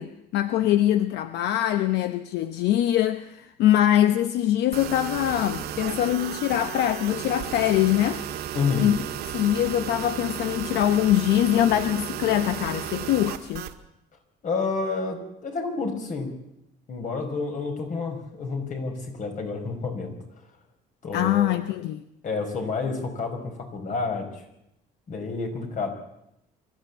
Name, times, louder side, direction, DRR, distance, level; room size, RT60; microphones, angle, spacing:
voice 1, 0.0-8.2 8.8-9.0 9.3-13.7 21.1-22.0, left 12 dB, 85° left, 10 dB, 0.9 m, -23 dB
sound 1, 4.7-13.7, right 10 dB, 75° right, 1.7 m, -34 dB
voice 2, 8.5-8.9 14.4-16.3 16.9-20.1 21.0-21.6 22.2-24.4 25.1-25.9, left 4 dB, 50° left, 4 dB, 5.5 m, -29 dB
25.0 x 14.0 x 8.4 m, 0.83 s
cardioid pair, 110°, 17 cm